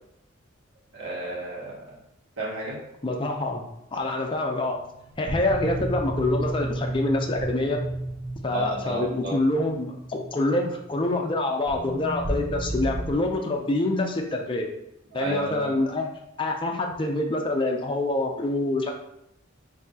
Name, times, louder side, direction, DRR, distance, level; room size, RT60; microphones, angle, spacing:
voice 1, 0.9-2.0 2.4-2.8 8.4-9.4 15.1-15.7, right 2 dB, 70° right, -5 dB, 1.5 m, -32 dB
voice 2, 3.0-3.6 3.9-4.8 5.2-7.8 8.4-14.7 15.1-16.1 16.4-18.9, left 2 dB, 25° left, 1 dB, 0.5 m, -26 dB
sound 1, 4.7-13.1, right 1 dB, 10° right, 1.1 m, -33 dB
5.9 x 2.7 x 2.8 m, 0.82 s
head